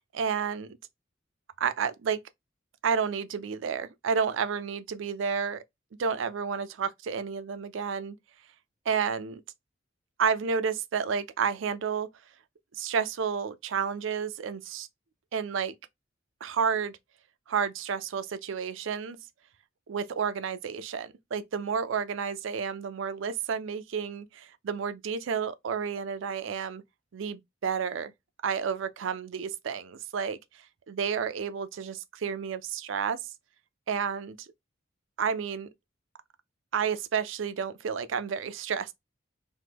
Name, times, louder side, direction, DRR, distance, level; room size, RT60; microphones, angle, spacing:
voice 1, 0.1-0.8 1.6-2.2 2.8-5.6 6.0-8.2 8.9-9.4 10.2-12.1 12.7-14.9 15.3-15.7 16.4-16.9 17.5-19.2 19.9-26.8 27.1-28.1 28.4-30.4 30.9-33.2 33.9-34.5 35.2-35.7 36.7-38.9, right 6 dB, 75° right, 0.4 m, -31 dB
3.0 x 2.1 x 3.3 m
head